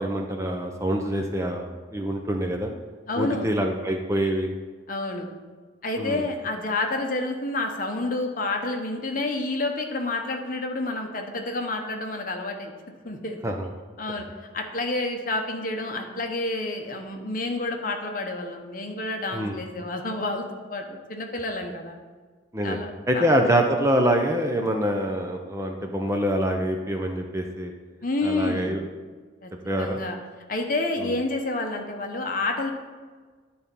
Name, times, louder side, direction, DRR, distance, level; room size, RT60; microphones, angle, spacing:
voice 1, 0.0-2.7 3.2-4.5 6.0-6.2 13.4-13.7 19.3-19.6 22.5-22.8 23.1-27.7 28.2-28.8 29.7-30.0, right 1 dB, 15° right, 3 dB, 0.5 m, -25 dB
voice 2, 3.1-3.5 4.9-5.3 5.8-12.7 13.0-13.4 14.0-14.3 14.5-22.0 22.6-23.3 28.0-28.8 29.4-29.5 29.8-30.2 30.5-32.7, left 2 dB, 45° left, 3 dB, 0.9 m, -29 dB
10.5 x 4.2 x 5.3 m, 1.5 s
head